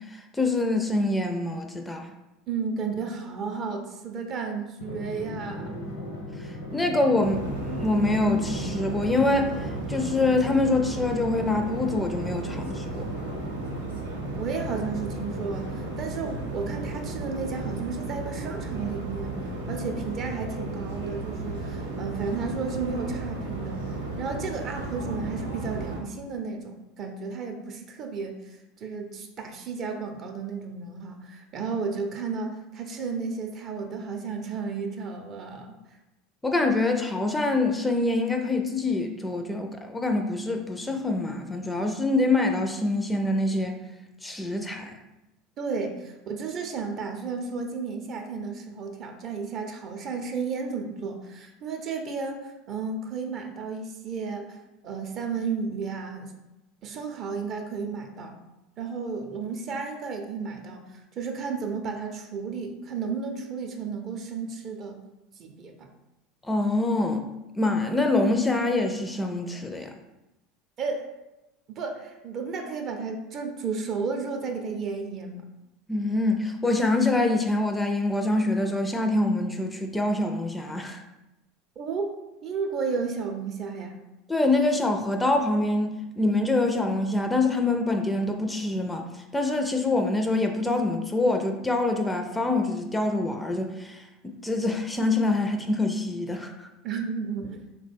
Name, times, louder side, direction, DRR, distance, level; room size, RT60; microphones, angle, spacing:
voice 1, 0.1-2.1 6.4-9.6 9.9-13.1 36.4-43.8 44.2-44.9 66.4-67.2 67.6-69.9 75.9-81.0 84.3-89.0 89.3-94.0 94.4-96.7, left 2 dB, 10° left, 4 dB, 0.4 m, -25 dB
voice 2, 2.5-5.8 14.4-23.8 24.2-35.7 45.6-54.6 54.8-56.3 56.8-58.3 58.8-65.0 65.4-65.9 70.8-71.1 71.7-75.4 81.8-82.1 82.4-84.0 96.8-97.6, right 5 dB, 45° right, 4 dB, 0.5 m, -33 dB
Drum, 4.8-17.2, left 1 dB, 85° left, 0.8 m, -39 dB
sound 1, 7.2-26.0, right 2 dB, 90° right, 0.6 m, -34 dB
3.6 x 2.2 x 3.3 m, 0.97 s
hypercardioid pair, 80°, 0 cm